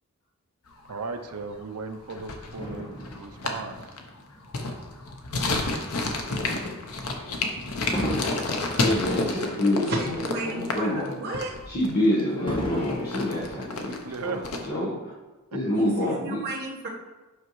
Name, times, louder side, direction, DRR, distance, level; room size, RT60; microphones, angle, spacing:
sound 1, 0.7-1.2 1.5-1.6 1.8-14.7, left 3 dB, 90° left, 0.9 m, -30 dB
voice 1, 0.9-2.9 3.1-3.8 14.0-14.5 15.5-15.6, right 4 dB, 75° right, 6 dB, 0.6 m, -35 dB
Fireworks, 2.6-5.2 5.8-6.0 7.9-10.4 10.8-10.9 12.5-14.3 15.1-15.2, equal, 20° left, 1.1 m, -36 dB
voice 2, 8.8-11.2 11.7-14.9 15.5-16.4, left 1 dB, 45° left, -8 dB, 1.3 m, -27 dB
voice 3, 9.7-11.5 15.7-16.9, right 2 dB, 45° right, -7 dB, 1.3 m, -33 dB
8.0 x 5.6 x 3.1 m, 1.2 s
head